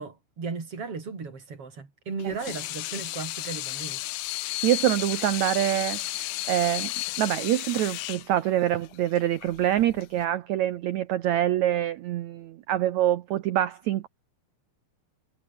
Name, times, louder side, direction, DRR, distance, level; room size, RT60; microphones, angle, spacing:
voice 1, 0.0-4.0, right 4 dB, 35° right, 5.3 m, -36 dB
Water tap faucet / Sink (filling or washing), 2.2-10.2, left 18 dB, 80° left, 2.4 m, -33 dB
voice 2, 4.6-6.9 7.2-14.1, right 12 dB, 90° right, 1.6 m, -25 dB
omnidirectional pair, 4.5 m